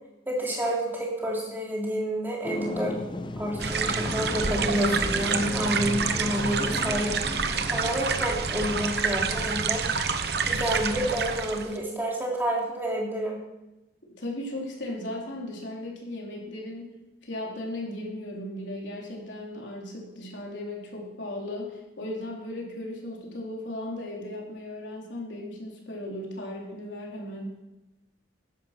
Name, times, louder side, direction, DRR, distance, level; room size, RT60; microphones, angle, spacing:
voice 1, 0.3-3.0 3.4-7.1 7.7-9.8 10.4-13.4, equal, 10° right, -3 dB, 3.2 m, -29 dB
sound 1, 2.4-9.0, left 1 dB, 25° left, 0.6 m, -35 dB
sound 2, 3.6-11.8, right 5 dB, 60° right, 1.0 m, -28 dB
voice 2, 14.2-16.9 17.2-27.5, left 1 dB, 80° left, -2 dB, 3.8 m, -36 dB
14.5 x 10.5 x 6.0 m, 0.98 s
head